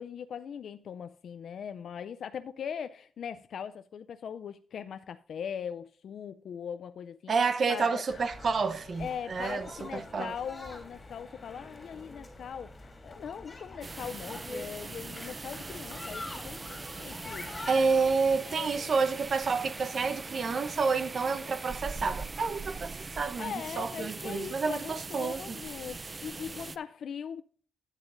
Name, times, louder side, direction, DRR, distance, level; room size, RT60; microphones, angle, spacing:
voice 1, 0.0-7.3 7.7-8.2 9.0-17.5 18.4-19.0 23.4-27.4, left 7 dB, 70° left, 0.4 m, -40 dB
voice 2, 7.3-10.3 17.7-25.6, right 4 dB, 50° right, 0.9 m, -29 dB
sound 1, 8.1-18.1, left 2 dB, 25° left, 2.8 m, -45 dB
sound 2, 13.8-26.8, right 3 dB, 30° right, 0.5 m, -41 dB
12.5 x 9.0 x 2.5 m
cardioid pair, 115°, 0 cm